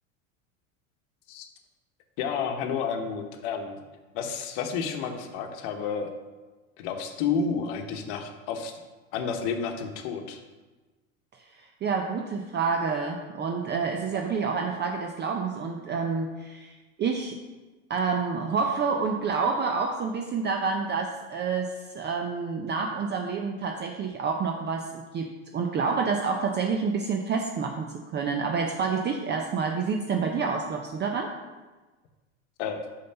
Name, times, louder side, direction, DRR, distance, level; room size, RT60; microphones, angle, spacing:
voice 1, 2.2-3.8 4.1-6.1 6.8-8.7 9.1-10.4 32.6-32.8, left 6 dB, 60° left, 6 dB, 1.1 m, -30 dB
voice 2, 11.5-16.7 17.0-17.4 17.9-31.3, right 5 dB, 25° right, 3 dB, 0.6 m, -28 dB
5.5 x 5.2 x 5.7 m, 1.2 s
hypercardioid pair, 90°, 40 cm